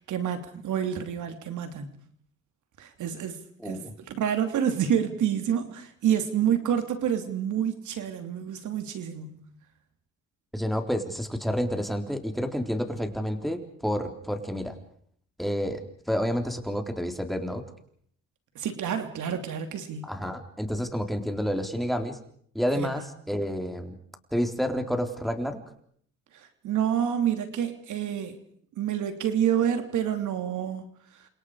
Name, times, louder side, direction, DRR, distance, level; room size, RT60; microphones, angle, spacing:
voice 1, 0.0-1.9 2.8-3.4 3.6-9.4 18.5-20.1 22.7-22.9 26.3-28.4 28.8-30.8, right 9 dB, 75° right, 8 dB, 3.2 m, -28 dB
voice 2, 3.6-3.9 10.5-14.8 15.4-17.6 20.0-22.2 22.5-23.9 24.3-25.6, equal, ahead, 6 dB, 3.9 m, -29 dB
30.0 x 27.0 x 5.0 m, 0.63 s
cardioid pair, 90°, 30 cm